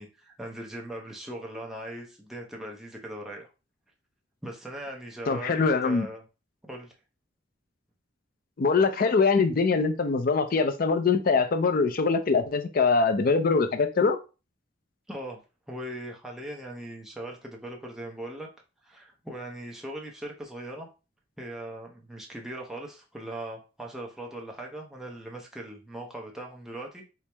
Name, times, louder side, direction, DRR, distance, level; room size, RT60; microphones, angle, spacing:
voice 1, 0.0-3.5 4.4-6.2 6.7-6.9 15.1-15.4 15.7-18.5 18.8-20.9 21.4-27.1, right 1 dB, ahead, -1 dB, 0.6 m, -39 dB
voice 2, 5.3-6.1 8.6-14.2, left 4 dB, 50° left, 8 dB, 0.4 m, -23 dB
4.4 x 2.0 x 3.3 m, 0.32 s
head